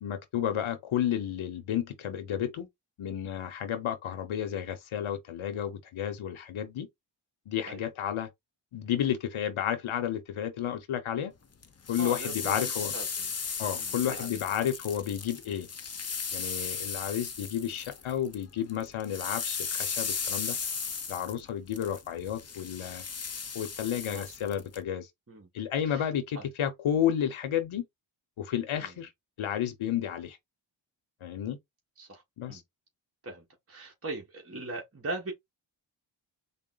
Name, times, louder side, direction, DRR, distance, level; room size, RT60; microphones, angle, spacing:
voice 1, 0.0-2.7 3.0-6.9 7.5-8.3 8.7-11.3 11.9-12.9 13.6-15.7 16.3-20.6 21.1-23.0 23.5-25.1 25.5-27.8 28.4-29.1 29.4-30.4 31.2-31.6 32.4-32.6, left 9 dB, 80° left, 0.7 m, -31 dB
sound 1, 11.6-18.4 18.7-24.8, left 5 dB, 30° left, 0.7 m, -36 dB
voice 2, 12.0-13.3 13.7-14.3 14.6-14.7 24.0-24.3 25.3-25.5 25.8-26.1 26.3-26.4 28.8-28.9 32.0-32.6 33.2-35.3, right 2 dB, 30° right, 1.2 m, -40 dB
3.8 x 2.1 x 3.8 m
cardioid pair, 60°, 48 cm